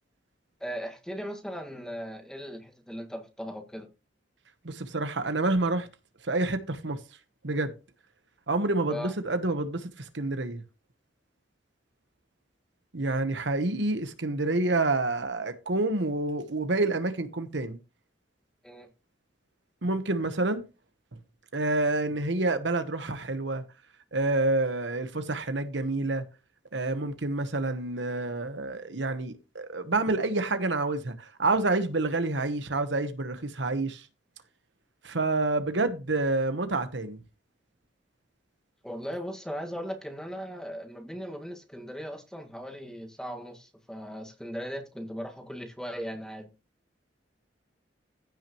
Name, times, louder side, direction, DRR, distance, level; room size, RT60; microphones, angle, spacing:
voice 1, 0.6-3.9 8.9-9.1 18.6-18.9 38.8-46.5, equal, 5° left, 1.8 m, -38 dB
voice 2, 4.6-5.9 6.2-7.0 7.4-7.7 8.5-10.6 12.9-17.8 19.8-20.6 21.5-23.6 24.1-26.2 26.7-34.0 35.0-37.2, right 2 dB, 70° right, 1.2 m, -28 dB
15.5 x 6.1 x 3.1 m
head